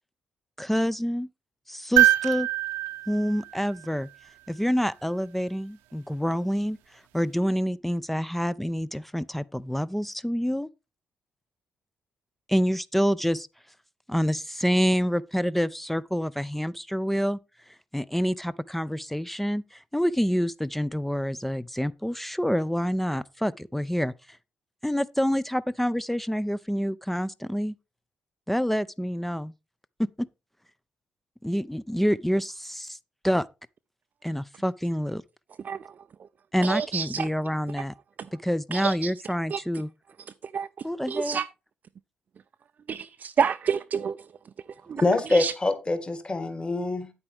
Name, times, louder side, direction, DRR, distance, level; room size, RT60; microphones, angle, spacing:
voice 1, 0.6-1.3 1.7-2.5 3.1-4.1 4.5-10.7 12.5-13.5 14.1-17.4 17.9-24.4 24.8-27.7 28.5-29.5 30.0-30.3 31.4-33.0 33.2-33.5 34.2-35.2 36.5-37.9 38.4-39.9 40.8-41.4, equal, 5° left, 0.5 m, -27 dB
sound 1, 2.0-4.3 6.3-6.4, right 14 dB, 70° right, 0.8 m, -24 dB
voice 2, 36.6-37.3 38.7-39.1 39.5-39.6 40.4-41.5 42.9-44.3 44.9-45.5, right 7 dB, 45° right, 0.5 m, -29 dB
voice 3, 45.0-47.1, left 2 dB, 25° left, 2.0 m, -25 dB
9.7 x 8.5 x 3.4 m
figure-of-eight pair, 40°, 4 cm